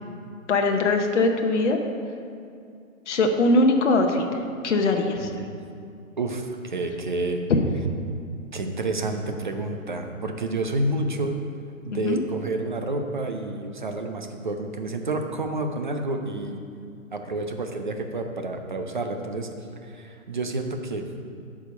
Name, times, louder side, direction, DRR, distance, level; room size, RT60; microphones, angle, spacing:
voice 1, 0.5-1.8 3.1-4.3 4.6-5.3 7.5-7.6 11.9-12.2, left 2 dB, 55° left, 3 dB, 1.0 m, -21 dB
voice 2, 6.2-7.4 8.5-11.4 11.8-16.6 17.1-19.5 19.8-21.0, right 2 dB, 35° right, 5 dB, 0.5 m, -29 dB
8.2 x 5.0 x 6.9 m, 2.4 s
hypercardioid pair, 170°, 42 cm